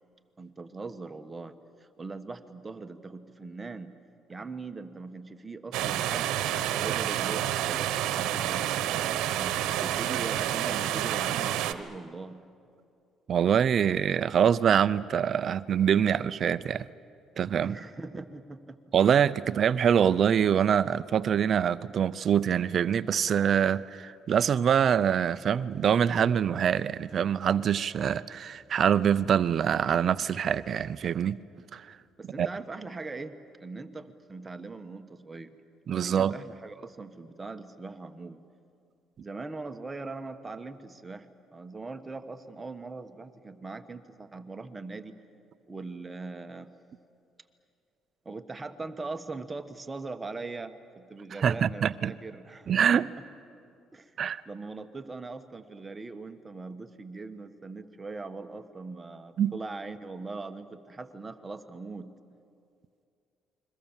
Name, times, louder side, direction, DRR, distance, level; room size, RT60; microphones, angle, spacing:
voice 1, 0.4-3.9 4.3-6.4 6.8-8.6 9.4-12.4 17.6-18.8 32.2-35.5 35.9-38.4 39.2-45.1 45.7-46.7 48.2-53.0 53.9-54.2 54.4-62.1, right 3 dB, 20° right, 7 dB, 1.3 m, -41 dB
sound 1, 5.7-11.7, right 12 dB, 85° right, 1.1 m, -29 dB
voice 2, 13.3-16.9 17.4-17.8 18.9-31.4 31.7-32.0 32.4-32.5 35.9-36.3 51.4-52.1 52.7-53.1 54.2-54.4 59.4-59.5, right 8 dB, 50° right, 15 dB, 0.5 m, -25 dB
29.0 x 22.5 x 7.3 m, 2.5 s
cardioid pair, 110°, 0 cm